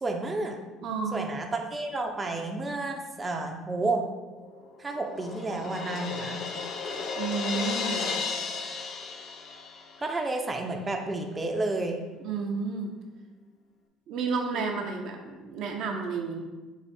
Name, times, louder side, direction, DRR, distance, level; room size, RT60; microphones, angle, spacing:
voice 1, 0.0-0.6 1.1-4.0 4.8-6.4 10.0-12.0 14.5-14.9, right 2 dB, 25° right, 2 dB, 0.6 m, -31 dB
voice 2, 0.8-1.3 7.2-8.1 12.2-12.9 14.1-16.4, right 4 dB, 65° right, 2 dB, 0.6 m, -31 dB
Crash cymbal, 4.4-10.1, left 5 dB, 55° left, 0.5 m, -34 dB
4.7 x 2.4 x 4.3 m, 1.2 s
hypercardioid pair, 70°, 0 cm